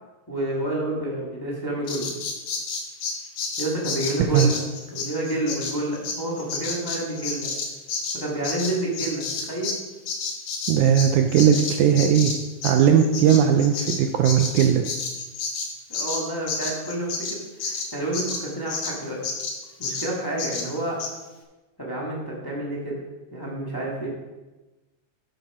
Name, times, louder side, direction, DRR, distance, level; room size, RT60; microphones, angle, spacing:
voice 1, 0.3-2.1 3.6-4.6 4.9-7.5 8.1-9.8 11.8-11.9 15.9-19.2 19.8-21.0 21.8-23.0 23.3-24.1, right 1 dB, 15° left, -5 dB, 0.8 m, -29 dB
Bird vocalization bird call bird song, 1.9-9.8 10.1-19.0 19.2-19.6 19.8-20.1 20.4-20.7 21.0-21.1, left 4 dB, 65° left, 2.5 m, -30 dB
voice 2, 10.7-12.3 12.6-14.9, right 8 dB, 85° right, 5 dB, 1.7 m, -18 dB
9.1 x 7.4 x 4.9 m, 1.1 s
omnidirectional pair, 4.0 m